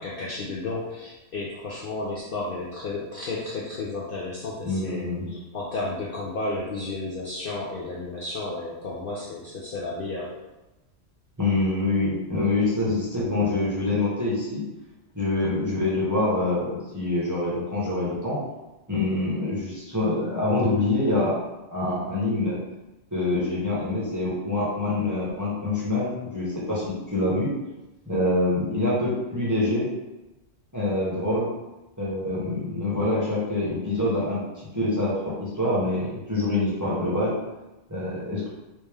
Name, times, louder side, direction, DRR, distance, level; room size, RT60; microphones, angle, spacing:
voice 1, 0.0-10.3, left 2 dB, 55° left, -5 dB, 0.6 m, -32 dB
voice 2, 4.6-5.3 11.4-14.6 15.1-18.4 18.9-21.4 21.7-22.6 23.1-27.5 28.0-29.9 30.7-31.5 32.0-34.4 34.7-37.4 37.9-38.5, left 2 dB, 15° right, -8 dB, 0.9 m, -25 dB
3.1 x 3.0 x 3.4 m, 1.0 s
omnidirectional pair, 1.3 m